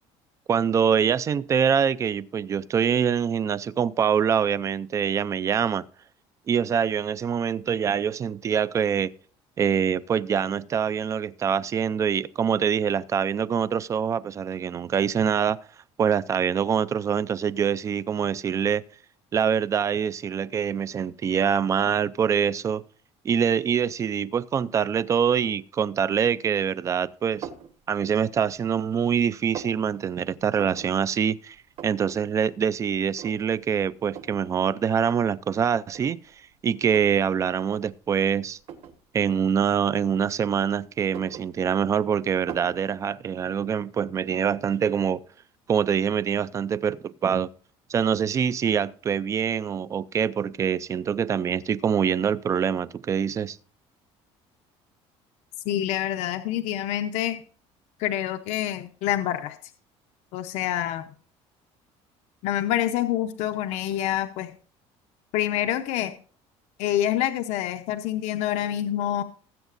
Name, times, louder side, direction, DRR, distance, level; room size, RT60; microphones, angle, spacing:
voice 1, 0.5-5.9 6.5-9.1 9.6-15.6 16.0-18.8 19.3-22.8 23.2-27.5 27.9-31.6 31.8-36.2 36.6-38.6 39.1-45.2 45.7-47.5 47.9-53.6, right 7 dB, 25° right, 0.4 m, -24 dB
sound 1, 27.4-27.7 28.3-28.9 29.2-29.8 30.5-30.9 31.3-31.4 31.5-32.2 32.5-32.6 33.2-33.6 34.1-34.4 35.3-35.4 35.9-37.2 37.6-37.8 38.6-39.0 39.9-40.6 41.0-42.0 42.5-42.8, right 8 dB, 55° right, 1.6 m, -41 dB
voice 2, 55.6-57.4 58.0-59.6 60.3-61.1 62.4-64.5 65.3-66.1 66.8-69.2, left 12 dB, 75° left, 0.8 m, -27 dB
19.5 x 8.1 x 2.6 m
cardioid pair, 160°, 12 cm